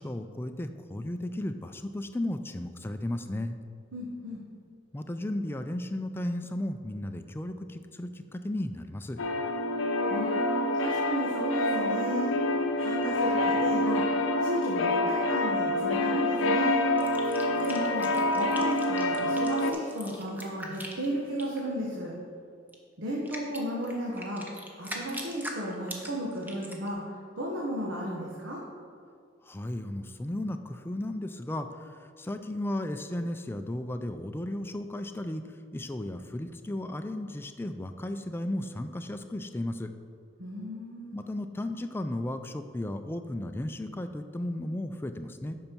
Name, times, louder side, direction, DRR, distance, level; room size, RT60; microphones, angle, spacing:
voice 1, 0.0-3.6 4.9-9.2 29.5-35.4 35.7-39.9 41.1-45.5, left 1 dB, 10° left, 8 dB, 0.4 m, -34 dB
voice 2, 3.9-4.4 10.1-12.4 12.8-16.9 17.6-18.1 18.3-22.1 23.0-24.4 24.8-27.0 27.4-28.6 40.4-41.2, equal, 80° right, -4 dB, 1.2 m, -34 dB
sound 1, 9.2-19.7, left 1 dB, 90° left, 0.6 m, -27 dB
sound 2, 17.0-21.6 22.7-22.8 23.3-26.9, right 1 dB, 10° right, 0.8 m, -41 dB
8.9 x 5.5 x 4.5 m, 2.2 s
head